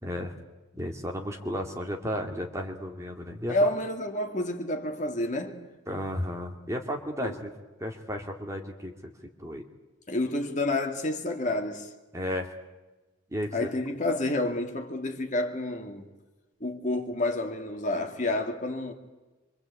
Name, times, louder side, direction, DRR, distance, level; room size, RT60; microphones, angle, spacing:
voice 1, 0.0-0.3 0.7-3.7 5.9-7.5 7.8-8.9 9.4-9.6 12.1-12.5 13.3-13.7, equal, 15° right, 2.2 m, -33 dB
voice 2, 3.5-5.6 7.2-7.4 10.1-11.9 13.5-16.1 16.6-18.9, left 1 dB, 40° left, 2.4 m, -29 dB
26.0 x 25.0 x 8.4 m
head